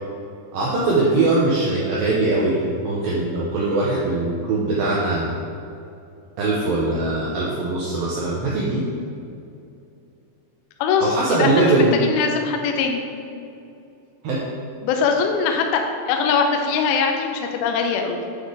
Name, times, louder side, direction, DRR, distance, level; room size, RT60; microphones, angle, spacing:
voice 1, 0.5-5.3 6.4-8.8 11.0-12.0 14.2-14.4, right 2 dB, 85° right, -5 dB, 2.1 m, -21 dB
voice 2, 10.8-13.0 14.8-18.2, left 5 dB, 85° left, 3 dB, 2.1 m, -22 dB
8.5 x 3.9 x 4.8 m, 2.6 s
omnidirectional pair, 5.1 m